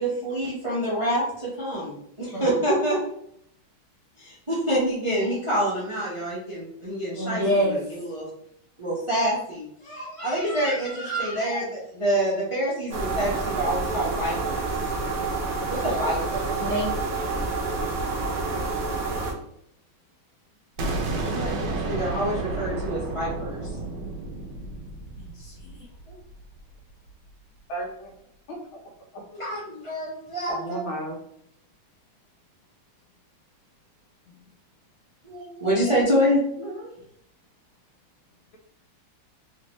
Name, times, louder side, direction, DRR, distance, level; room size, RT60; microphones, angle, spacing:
voice 1, 0.0-3.0 4.2-8.3 8.8-14.6 15.7-16.7 21.2-23.6 26.1-26.2 29.3-30.8 35.2-36.9, equal, 20° right, -7 dB, 0.9 m, -27 dB
voice 2, 7.2-7.8 16.3-17.3 25.2-25.8 34.3-34.4, equal, 45° left, -3 dB, 1.8 m, -28 dB
sound 1, 12.9-19.3, right 3 dB, 80° right, 0.6 m, -28 dB
sound 2, 20.8-26.6, right 2 dB, 65° right, 1.2 m, -31 dB
voice 3, 27.7-28.1 28.5-28.6 29.1-29.2 30.5-31.2, right 1 dB, 75° left, 0 dB, 1.7 m, -33 dB
3.6 x 3.4 x 3.0 m, 0.70 s
omnidirectional pair, 2.3 m